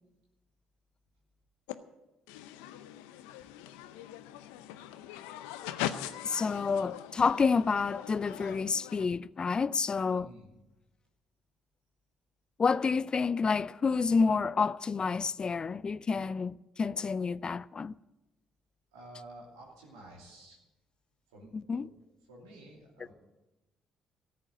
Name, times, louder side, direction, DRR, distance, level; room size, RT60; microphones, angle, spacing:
sound 1, 1.7-1.8 2.3-9.1, left 12 dB, 85° left, 0.6 m, -41 dB
voice 1, 6.2-10.3 12.6-17.9 21.5-21.9, left 5 dB, 40° left, 0.4 m, -29 dB
voice 2, 10.0-10.5 18.9-20.6 21.3-21.5 21.8-21.9 22.3-23.1, right 1 dB, 90° right, 2.8 m, -51 dB
13.5 x 7.6 x 9.4 m
hypercardioid pair, 50°, 2 cm